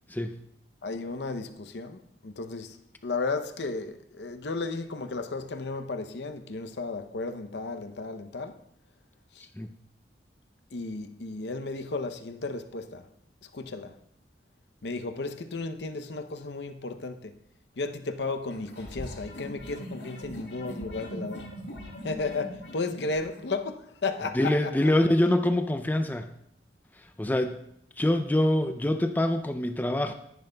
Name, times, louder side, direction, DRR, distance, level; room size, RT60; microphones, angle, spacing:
voice 1, 0.1-0.4 9.6-9.7 24.3-26.3 27.0-27.6 28.0-30.1, left 1 dB, 10° left, 0.4 m, -25 dB
voice 2, 0.8-2.8 3.0-8.6 9.3-9.5 10.7-13.1 13.5-14.0 14.8-17.4 17.8-21.5 22.0-24.7, left 3 dB, 70° left, 0.7 m, -34 dB
sound 1, 18.5-23.4, equal, 90° left, 4.3 m, -41 dB
13.5 x 10.5 x 2.3 m
head